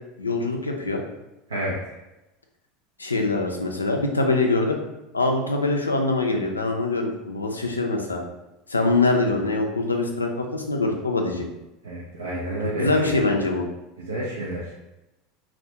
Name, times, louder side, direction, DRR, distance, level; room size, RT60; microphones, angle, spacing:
voice 1, 0.2-1.0 3.0-4.8 5.1-8.2 8.7-11.4 12.8-13.7, left 2 dB, 90° left, 3 dB, 0.3 m, -23 dB
voice 2, 11.8-12.9 14.0-14.8, right 1 dB, 85° right, -5 dB, 0.4 m, -29 dB
2.3 x 2.0 x 2.8 m, 0.96 s
figure-of-eight pair, 80°, 0 cm